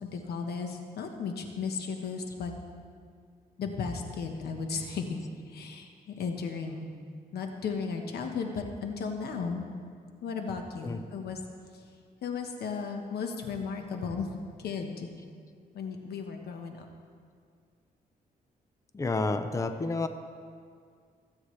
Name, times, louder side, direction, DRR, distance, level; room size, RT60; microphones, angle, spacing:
voice 1, 0.0-2.5 3.6-6.9 7.3-9.7 10.2-11.4 12.2-14.3 14.6-15.1 15.7-16.8, left 5 dB, 90° left, 4 dB, 1.3 m, -35 dB
voice 2, 18.9-20.1, left 3 dB, 20° left, 8 dB, 0.6 m, -30 dB
26.0 x 8.7 x 3.3 m, 2.1 s
cardioid pair, 120°, 16 cm